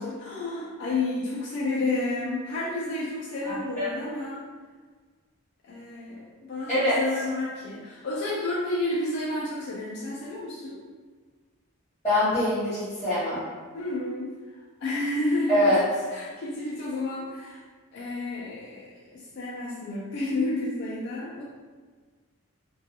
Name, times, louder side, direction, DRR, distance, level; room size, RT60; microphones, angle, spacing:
voice 1, 0.0-4.4 5.6-10.8 13.7-14.4 14.8-15.7 16.1-17.6 17.9-21.4, left 2 dB, 50° left, -6 dB, 0.3 m, -31 dB
voice 2, 3.4-3.9 6.7-7.0 12.0-13.4 15.5-15.8, left 1 dB, 10° left, -14 dB, 1.0 m, -24 dB
2.3 x 2.3 x 2.7 m, 1.5 s
head